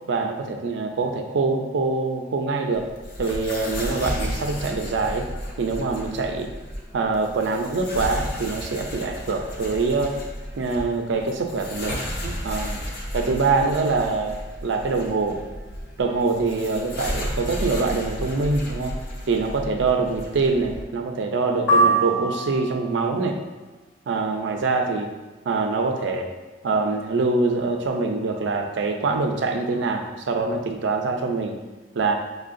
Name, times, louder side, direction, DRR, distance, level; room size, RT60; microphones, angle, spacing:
voice 1, 0.1-2.9 3.2-5.3 5.6-6.5 6.9-10.2 10.6-12.8 13.1-15.4 16.0-18.9 19.3-23.4 24.1-25.1 25.5-26.3 26.6-31.6 31.9-32.1, right 3 dB, 70° right, 4 dB, 0.4 m, -24 dB
sound 1, 2.7-20.8, equal, 55° left, 0.6 m, -33 dB
sound 2, 21.7-23.0, right 2 dB, 90° left, 1.1 m, -21 dB
5.4 x 2.2 x 2.5 m, 1.2 s
head